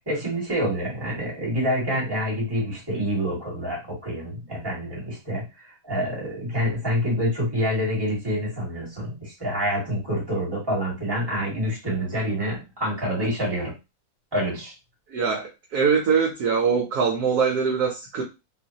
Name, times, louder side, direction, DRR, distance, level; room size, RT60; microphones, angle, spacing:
voice 1, 0.0-5.5 5.8-13.7 14.3-14.7, equal, 15° right, -4 dB, 1.5 m, -27 dB
voice 2, 15.1-18.2, right 6 dB, 65° right, 1 dB, 1.0 m, -23 dB
3.1 x 2.5 x 2.8 m, 0.26 s
omnidirectional pair, 2.1 m